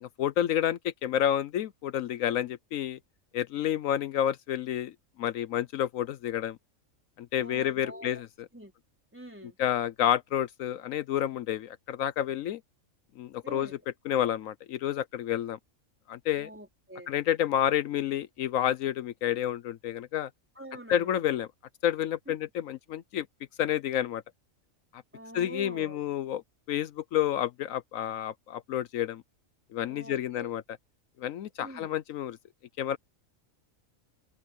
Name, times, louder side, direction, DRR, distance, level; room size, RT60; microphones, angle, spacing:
voice 1, 0.0-3.0 3.3-6.6 7.2-8.3 9.4-12.6 13.2-13.8 14.0-15.6 16.1-16.5 17.1-20.3 20.9-21.5 21.8-23.3 23.6-24.2 24.9-25.0 25.3-26.4 26.7-29.2 29.7-30.6 31.2-32.4 32.8-33.0, left 11 dB, 80° left, 1.1 m, -29 dB
voice 2, 7.4-8.2 8.5-8.7 9.1-9.6 13.4-13.8 16.4-17.1 20.6-21.2 22.3-22.4 25.1-26.0 29.9-30.5 31.6-31.9, right 1 dB, 10° right, 3.9 m, -45 dB
omnidirectional pair, 1.4 m